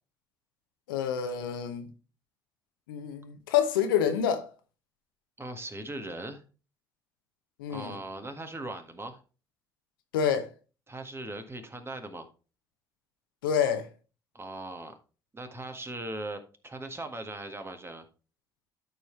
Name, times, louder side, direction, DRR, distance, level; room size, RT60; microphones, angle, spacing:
voice 1, 0.9-1.9 2.9-4.5 7.6-8.0 10.1-10.5 13.4-13.9, left 8 dB, 80° left, 1.0 m, -27 dB
voice 2, 5.4-6.4 7.7-9.2 10.9-12.2 14.3-14.9 15.3-18.0, right 2 dB, 20° right, 1.7 m, -39 dB
12.5 x 5.0 x 3.2 m
hypercardioid pair, 50°, 11 cm